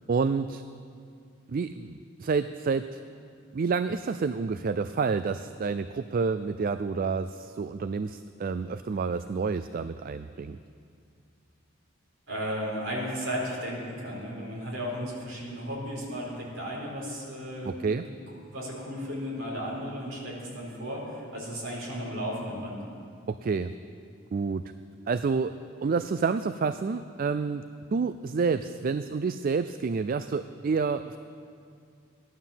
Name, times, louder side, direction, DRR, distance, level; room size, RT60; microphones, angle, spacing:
voice 1, 0.1-0.6 1.5-3.0 3.5-10.6 17.7-18.0 23.3-23.7 24.3-24.7 25.1-25.6 25.8-31.2, right 5 dB, 45° right, 12 dB, 0.3 m, -29 dB
voice 2, 12.3-22.8, equal, 65° right, -4 dB, 4.5 m, -35 dB
16.0 x 11.0 x 7.3 m, 2.3 s
head